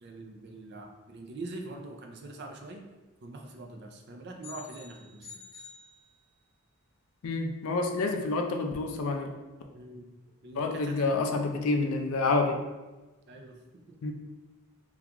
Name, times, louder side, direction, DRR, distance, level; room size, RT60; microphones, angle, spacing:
voice 1, 0.0-2.8 3.2-5.4 9.7-10.1 10.4-11.5 13.3-13.6 13.9-14.0, right 2 dB, 50° right, 2 dB, 0.4 m, -43 dB
sound 1, 4.4-6.6, left 5 dB, 25° left, 1.0 m, -49 dB
voice 2, 7.2-9.3 10.6-12.6 14.0-14.1, left 3 dB, 75° left, 4 dB, 0.4 m, -28 dB
3.5 x 2.3 x 2.9 m, 1.1 s
head